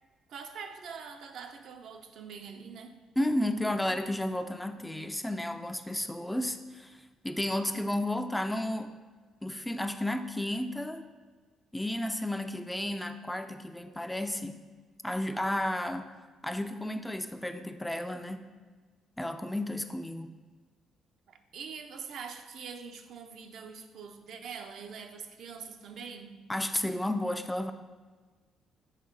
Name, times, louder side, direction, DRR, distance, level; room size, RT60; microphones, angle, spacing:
voice 1, 0.3-2.9 21.3-26.4, right 6 dB, 70° right, 6 dB, 0.5 m, -44 dB
voice 2, 3.2-8.9 9.4-11.1 11.7-14.6 15.0-16.1 16.4-18.5 19.2-20.3 26.5-27.7, left 1 dB, 5° left, 8 dB, 0.3 m, -32 dB
6.5 x 3.6 x 4.0 m, 1.4 s
cardioid pair, 100°, 0 cm